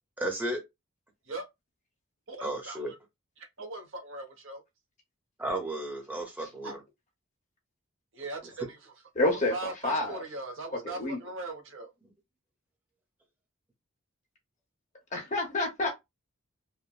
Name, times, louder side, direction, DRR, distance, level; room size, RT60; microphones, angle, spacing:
voice 1, 0.2-0.6 2.4-2.9 5.4-6.8, right 1 dB, 10° right, 0.8 m, -33 dB
voice 2, 2.3-2.8 3.4-4.6 6.6-6.8 8.1-8.8 9.5-11.9, right 2 dB, 60° right, 0.8 m, -39 dB
voice 3, 9.1-10.2 10.8-11.2 15.1-15.9, left 2 dB, 35° left, 0.9 m, -28 dB
3.2 x 2.1 x 2.3 m
head